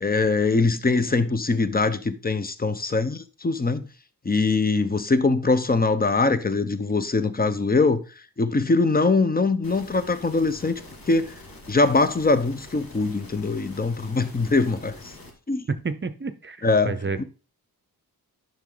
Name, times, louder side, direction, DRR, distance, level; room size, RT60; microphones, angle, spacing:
voice 1, 0.0-3.9 4.2-8.0 8.4-10.8 11.1-11.3 11.7-15.1 15.5-15.7 16.6-17.2, left 3 dB, 25° left, 0.8 m, -22 dB
sound 1, 9.6-15.3, left 2 dB, 65° left, 2.5 m, -45 dB
voice 2, 15.7-17.2, right 4 dB, 30° right, 0.7 m, -30 dB
10.5 x 6.0 x 3.9 m
wide cardioid pair, 150°, 38 cm